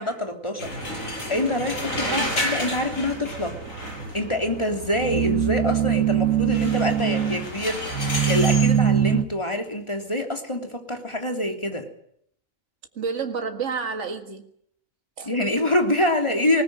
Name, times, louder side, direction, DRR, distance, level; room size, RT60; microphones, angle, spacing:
voice 1, 0.0-3.6 4.1-11.9 15.2-16.6, left 1 dB, 20° left, 4 dB, 3.4 m, -26 dB
sound 1, 0.6-4.3 6.5-8.7, left 1 dB, 75° left, 6.8 m, -31 dB
sound 2, 0.6-9.2, right 9 dB, 80° right, 2.1 m, -25 dB
voice 2, 2.0-2.4 12.9-14.5 15.2-15.3, right 5 dB, 60° right, 5 dB, 2.2 m, -30 dB
20.5 x 20.0 x 8.9 m, 0.69 s
omnidirectional pair, 1.4 m